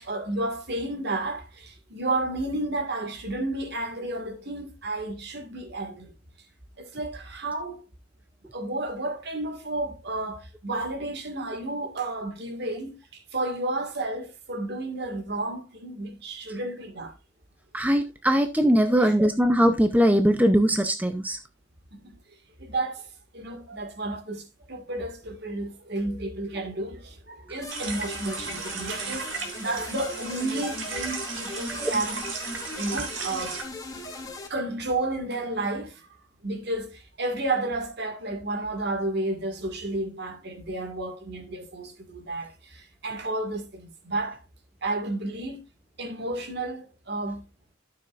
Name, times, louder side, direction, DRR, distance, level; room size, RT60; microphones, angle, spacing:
voice 1, 0.0-6.1 6.8-7.8 8.5-17.2 18.9-19.2 21.9-22.1 22.6-23.1 23.3-32.3 32.8-33.6 34.5-36.2 36.4-44.4 44.8-45.6 46.0-47.4, right 2 dB, 55° right, 1.9 m, -32 dB
voice 2, 17.7-21.4 31.8-31.9, equal, 10° right, 0.6 m, -21 dB
sound 1, 27.6-34.5, left 2 dB, 20° left, 2.6 m, -38 dB
sound 2, 27.7-33.6, right 5 dB, 85° right, 2.9 m, -35 dB
12.5 x 7.0 x 2.5 m
head